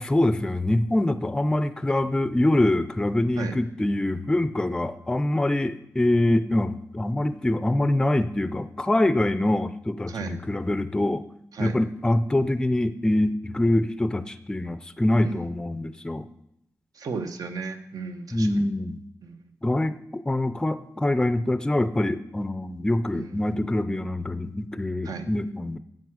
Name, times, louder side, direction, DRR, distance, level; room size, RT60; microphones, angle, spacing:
voice 1, 0.0-11.2 11.6-16.3 18.3-19.0 19.6-25.8, left 1 dB, 10° left, 12 dB, 0.4 m, -24 dB
voice 2, 10.1-10.4 11.5-11.8 15.2-15.5 16.9-18.7 19.2-19.5 23.1-23.5 25.0-25.3, right 5 dB, 80° right, 8 dB, 1.0 m, -35 dB
10.5 x 7.5 x 6.2 m, 0.78 s
wide cardioid pair, 170°, 6 cm